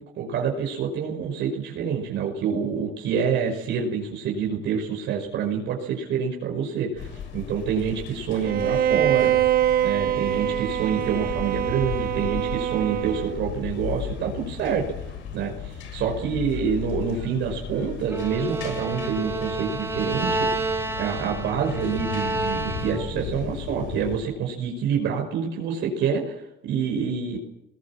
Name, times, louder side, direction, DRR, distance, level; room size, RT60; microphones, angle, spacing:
voice 1, 0.2-9.3 9.8-14.9 15.3-20.5 21.0-27.4, right 7 dB, 65° right, 1 dB, 5.6 m, -27 dB
sound 1, 7.0-24.2, left 7 dB, 70° left, 6.2 m, -36 dB
Bowed string instrument, 8.4-13.5, right 11 dB, 45° right, 1.4 m, -24 dB
Bowed string instrument 2, 18.1-23.3, right 2 dB, 10° right, 1.7 m, -29 dB
23.5 x 21.5 x 7.4 m, 0.84 s
cardioid pair, 145°, 21 cm